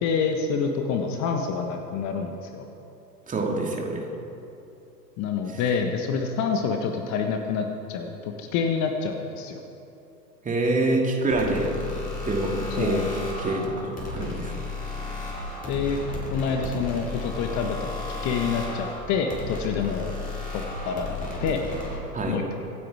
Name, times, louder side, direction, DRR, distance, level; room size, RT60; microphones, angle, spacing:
voice 1, 0.0-2.6 5.2-9.6 12.7-13.0 15.7-16.0 16.3-20.2 20.5-21.1 21.4-21.6 22.3-22.5, left 5 dB, 35° left, 4 dB, 1.3 m, -27 dB
voice 2, 3.3-4.0 10.4-11.7 12.2-13.1 13.4-14.5 22.1-22.4, right 2 dB, 15° right, 0 dB, 2.6 m, -26 dB
sound 1, 11.3-22.0, left 2 dB, 15° left, 4.6 m, -34 dB
25.5 x 9.1 x 4.9 m, 2.8 s
figure-of-eight pair, 100°, 50 cm